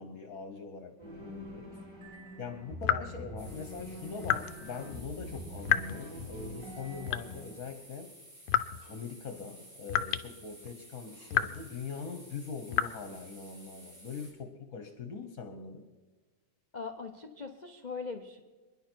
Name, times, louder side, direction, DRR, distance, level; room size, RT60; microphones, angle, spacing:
voice 1, 0.0-1.8 2.4-8.1 8.9-15.8, left 5 dB, 50° left, 6 dB, 1.4 m, -42 dB
sound 1, 1.0-7.7, equal, 35° right, 4.8 m, -45 dB
sound 2, 2.8-3.2 4.2-4.5 5.6-6.1 7.1-7.5 8.5-8.9 9.9-10.3 10.6-10.7 11.3-11.7 12.7-12.8, left 11 dB, 70° left, 1.3 m, -29 dB
sound 3, 3.4-14.3, right 1 dB, 65° right, 6.0 m, -54 dB
voice 2, 16.7-18.4, left 4 dB, 90° left, 5 dB, 0.4 m, -40 dB
27.5 x 10.5 x 4.5 m, 1.3 s
omnidirectional pair, 2.3 m